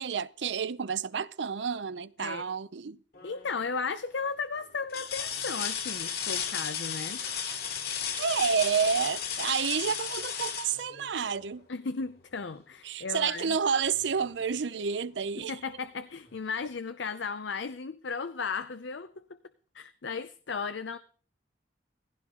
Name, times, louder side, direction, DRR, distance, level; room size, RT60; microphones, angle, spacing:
voice 1, 0.0-3.0 8.2-11.7 12.8-15.6, right 6 dB, 80° right, 0.6 m, -30 dB
sound 1, 3.1-3.6 4.2-4.3 4.9-11.6 13.4-13.5 14.0-15.0 16.3-16.4, left 7 dB, 55° left, 2.5 m, -35 dB
voice 2, 3.2-7.2 11.7-13.6 15.4-19.2 19.7-21.0, left 5 dB, 85° left, 0.7 m, -35 dB
17.5 x 16.0 x 3.8 m
head